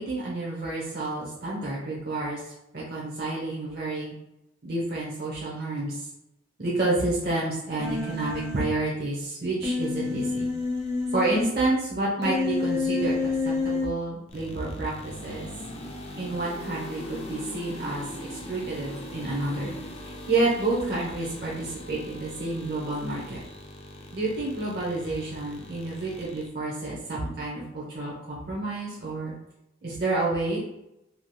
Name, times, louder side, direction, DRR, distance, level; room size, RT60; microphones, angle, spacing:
voice 1, 0.0-2.4 2.7-4.1 4.6-6.1 6.6-10.5 11.1-15.5 16.2-19.7 20.3-23.4 24.1-29.3 29.8-30.6, right 2 dB, 55° right, -5 dB, 0.7 m, -29 dB
Human voice, 7.8-8.6 9.6-11.4 12.2-13.9, left 3 dB, 15° right, 0.7 m, -28 dB
sound 1, 14.3-26.5, left 1 dB, 30° left, 0.4 m, -41 dB
3.2 x 2.7 x 2.2 m, 0.86 s
head